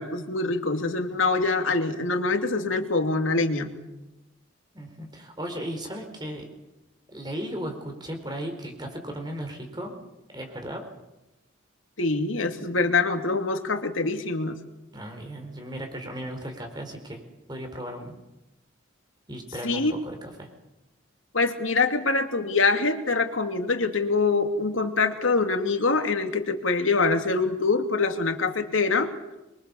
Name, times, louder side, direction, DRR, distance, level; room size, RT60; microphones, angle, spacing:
voice 1, 0.0-3.7 12.0-14.6 19.6-19.9 21.3-29.1, left 3 dB, 80° left, 6 dB, 2.6 m, -24 dB
voice 2, 4.7-6.5 7.1-9.9 10.3-10.8 14.9-17.2 17.5-18.1 19.3-20.5, equal, 20° right, 4 dB, 4.3 m, -36 dB
25.5 x 23.5 x 7.1 m, 0.97 s
head